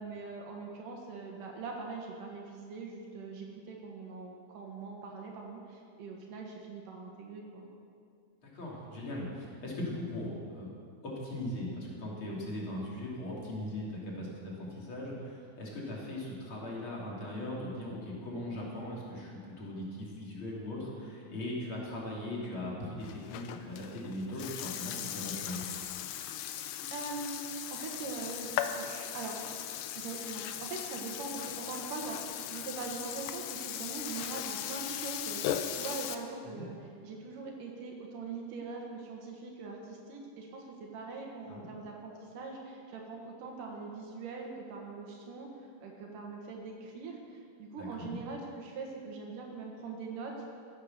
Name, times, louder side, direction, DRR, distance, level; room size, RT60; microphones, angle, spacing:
voice 1, 0.0-7.7 26.5-29.4 29.9-45.5 45.8-50.4, right 4 dB, 75° right, 0 dB, 3.0 m, -42 dB
voice 2, 8.4-10.7 11.0-25.7 36.5-36.6 41.5-41.7 47.8-48.2, left 1 dB, 40° left, -4 dB, 3.5 m, -39 dB
Burping eructation, 23.0-36.2, left 10 dB, 90° left, 2.4 m, -38 dB
15.5 x 9.8 x 6.6 m, 2.3 s
omnidirectional pair, 3.8 m